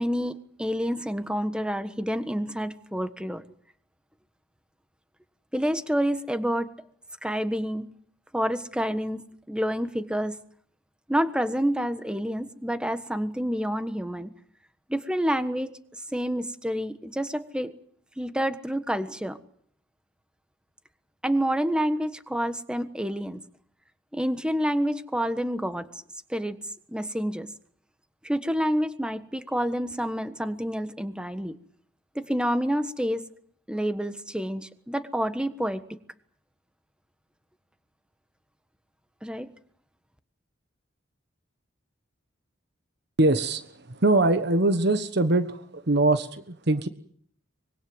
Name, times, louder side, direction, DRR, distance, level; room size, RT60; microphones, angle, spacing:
voice 1, 0.0-3.4 5.5-6.7 7.2-7.9 8.3-10.3 11.1-14.3 14.9-15.7 16.1-17.7 18.2-19.4 21.2-23.4 24.1-25.9 26.3-26.6 26.9-27.5 28.2-31.6 32.1-33.2 33.7-35.8 39.2-39.5, equal, 5° right, 11 dB, 1.4 m, -28 dB
voice 2, 43.2-43.6 43.9-46.9, right 2 dB, 60° right, 11 dB, 1.3 m, -22 dB
25.0 x 22.5 x 8.0 m, 0.64 s
head